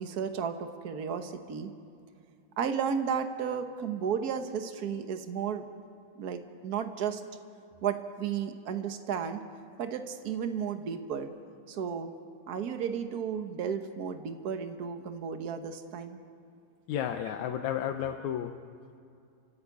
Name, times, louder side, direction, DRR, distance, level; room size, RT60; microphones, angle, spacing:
voice 1, 0.0-1.7 2.6-5.6 6.2-7.2 7.8-9.4 9.8-11.3 11.7-12.1 12.5-16.2, right 7 dB, 65° right, 7 dB, 0.9 m, -33 dB
voice 2, 16.9-18.5, left 9 dB, 75° left, 5 dB, 2.1 m, -32 dB
30.0 x 14.5 x 8.5 m, 2.5 s
omnidirectional pair, 3.4 m